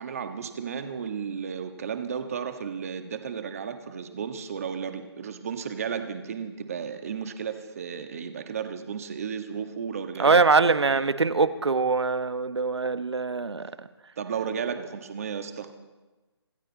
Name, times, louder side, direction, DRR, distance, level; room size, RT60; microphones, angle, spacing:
voice 1, 0.0-10.5 10.9-11.1 14.2-15.7, right 7 dB, 35° right, 7 dB, 1.5 m, -34 dB
voice 2, 10.2-13.7, right 4 dB, 85° right, 12 dB, 1.2 m, -23 dB
26.5 x 13.5 x 4.1 m, 1.2 s
figure-of-eight pair, 165°, 14 cm